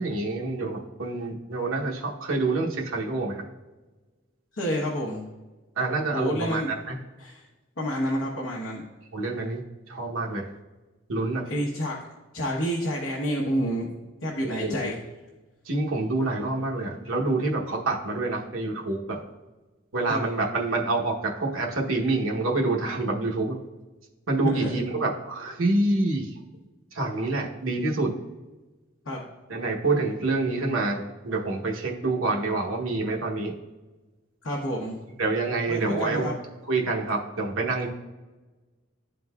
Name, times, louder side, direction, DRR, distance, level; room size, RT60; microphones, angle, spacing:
voice 1, 0.0-3.4 5.8-7.0 9.1-9.6 9.9-10.5 11.1-11.5 14.4-14.9 15.6-19.2 19.9-23.6 24.3-26.4 26.9-28.1 29.5-33.5 35.2-36.3 36.7-37.9, right 2 dB, 80° right, 0 dB, 0.9 m, -27 dB
voice 2, 4.5-5.2 6.1-6.7 7.2-7.4 7.8-8.8 11.5-12.0 12.3-13.9 14.2-15.0 20.1-20.2 24.4-24.8 29.1-29.2 34.4-35.0 35.7-36.3, equal, 65° left, -4 dB, 1.0 m, -29 dB
11.5 x 3.8 x 2.3 m, 1.2 s
head